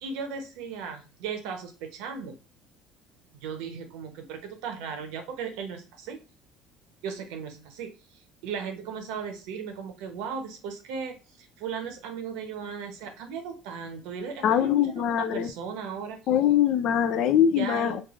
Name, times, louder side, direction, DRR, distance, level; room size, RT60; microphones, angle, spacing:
voice 1, 0.0-2.3 3.4-6.2 7.0-16.2 17.5-18.0, right 6 dB, 85° right, 0.8 m, -36 dB
voice 2, 14.4-15.5 16.3-18.0, left 9 dB, 55° left, 0.4 m, -23 dB
3.2 x 2.4 x 2.4 m
cardioid pair, 140°, 0 cm